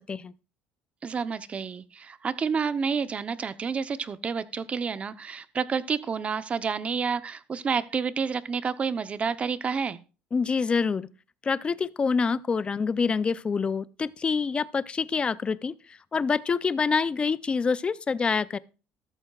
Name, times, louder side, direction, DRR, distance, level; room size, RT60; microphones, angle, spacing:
voice 1, 1.0-10.0, right 5 dB, 30° right, 0.8 m, -29 dB
voice 2, 10.3-11.1 11.4-15.7 16.1-18.6, left 5 dB, 25° left, 0.5 m, -26 dB
13.5 x 12.5 x 2.4 m
cardioid pair, 120°, 4 cm